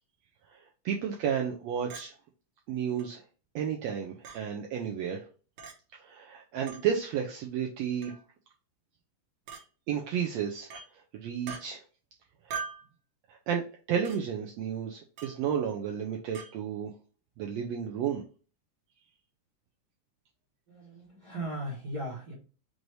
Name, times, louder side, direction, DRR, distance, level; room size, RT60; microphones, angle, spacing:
voice 1, 0.5-2.1 2.7-3.2 3.5-5.2 6.0-8.1 9.9-10.7 11.1-11.8 12.5-12.6 13.3-16.9 17.4-18.2, right 8 dB, 90° right, 0 dB, 1.5 m, -32 dB
Chink clink, 1.9-2.1 3.0-3.1 4.2-4.4 5.6-5.7 6.7-6.8 8.0-8.2 9.5-9.6 10.7-10.9 11.5-11.6 12.5-12.9 14.1-14.2 15.2-15.4 16.4-16.5, right 5 dB, 65° right, 1.9 m, -40 dB
voice 2, 20.7-22.3, right 1 dB, 45° right, -5 dB, 1.3 m, -37 dB
6.1 x 2.6 x 3.2 m, 0.36 s
omnidirectional pair, 3.7 m